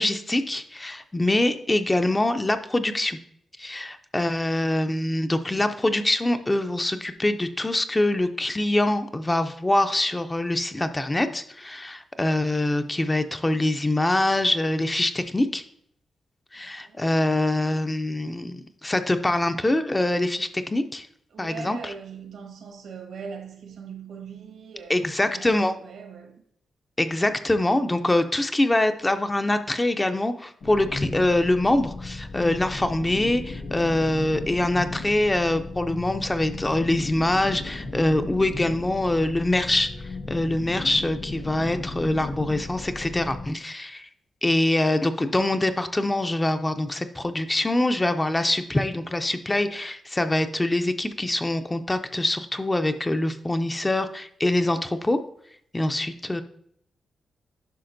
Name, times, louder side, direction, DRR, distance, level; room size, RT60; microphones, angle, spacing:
voice 1, 0.0-3.2 3.6-15.6 16.5-21.1 21.4-21.9 24.9-25.8 27.0-44.1 44.4-55.2 55.7-56.4, left 1 dB, 15° left, 0.4 m, -24 dB
voice 2, 16.5-17.4 21.3-26.4, right 5 dB, 80° right, 1.3 m, -41 dB
sound 1, 30.6-43.5, left 3 dB, 70° left, 1.4 m, -35 dB
10.0 x 5.9 x 2.6 m
wide cardioid pair, 155°, 0 cm